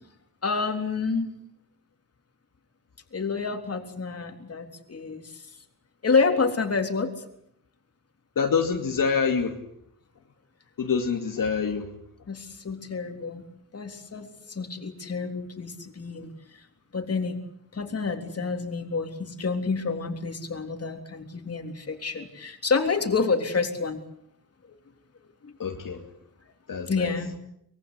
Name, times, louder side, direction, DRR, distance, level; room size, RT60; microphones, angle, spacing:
voice 1, 0.4-1.3 3.1-5.4 6.0-7.1 12.3-13.4 13.7-16.6 16.9-17.4 17.7-24.0 25.4-25.5 26.9-27.4, left 4 dB, 45° left, 5 dB, 3.6 m, -28 dB
voice 2, 8.4-9.6 10.8-11.9 25.6-26.0 26.7-27.1, left 6 dB, 70° left, 3 dB, 2.5 m, -26 dB
24.5 x 22.0 x 8.3 m, 0.73 s
wide cardioid pair, 125°, 34 cm